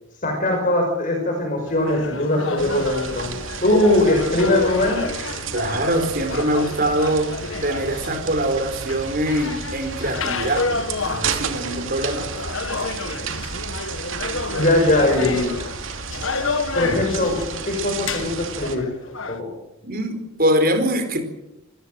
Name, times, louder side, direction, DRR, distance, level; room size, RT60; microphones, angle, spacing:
voice 1, 0.2-3.3 3.6-5.1 14.5-15.7 16.7-17.4 17.7-18.9 19.3-19.6, left 1 dB, 40° left, 2 dB, 5.7 m, -20 dB
sound 1, 1.7-19.4, left 3 dB, 65° left, 1.7 m, -30 dB
sound 2, 2.6-18.8, right 5 dB, 65° right, 2.6 m, -32 dB
voice 2, 5.5-7.3 7.6-10.7 11.0-12.3 16.8-17.1 19.8-21.2, right 1 dB, 45° right, 8 dB, 4.5 m, -23 dB
28.0 x 16.0 x 7.8 m, 0.88 s
head